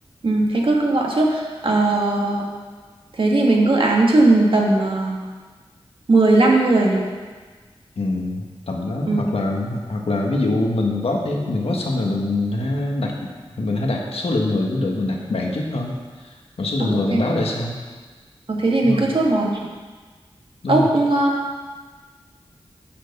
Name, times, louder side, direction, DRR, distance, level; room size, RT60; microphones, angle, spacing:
voice 1, 0.2-2.5 3.2-5.2 6.1-7.0 9.1-9.3 16.8-17.2 18.5-19.5 20.7-21.4, right 2 dB, 60° right, -2 dB, 1.8 m, -18 dB
voice 2, 7.9-13.3 13.6-17.8 18.8-19.1 20.6-20.9, left 2 dB, 85° left, 0 dB, 1.4 m, -24 dB
7.6 x 6.9 x 6.6 m, 1.4 s
wide cardioid pair, 90°, 10 cm